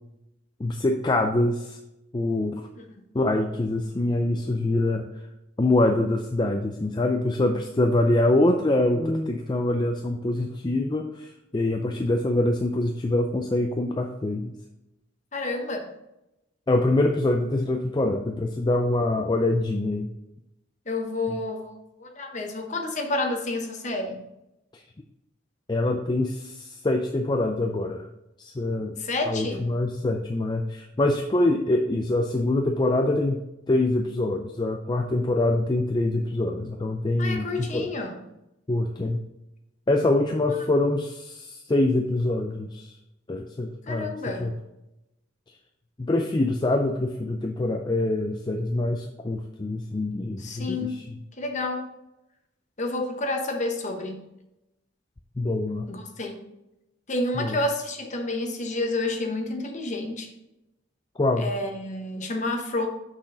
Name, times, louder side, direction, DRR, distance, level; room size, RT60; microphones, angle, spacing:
voice 1, 0.6-1.8 2.1-2.6 3.1-5.1 5.6-14.5 16.7-20.1 21.3-21.4 24.7-24.8 25.7-28.1 28.4-29.0 29.3-33.4 33.7-37.9 38.7-39.2 39.9-43.0 43.3-44.1 44.4-44.5 46.0-51.2 55.4-55.9 57.3-57.6 61.2-61.5, left 2 dB, 25° left, 4 dB, 0.4 m, -25 dB
voice 2, 15.3-15.9 20.9-21.7 22.0-24.2 29.0-29.7 37.2-38.2 43.9-44.5 50.4-51.0 51.4-51.8 52.8-54.2 55.9-56.4 57.1-60.3 61.4-62.9, left 2 dB, 40° left, 3 dB, 1.0 m, -29 dB
6.2 x 6.1 x 3.8 m, 0.90 s
head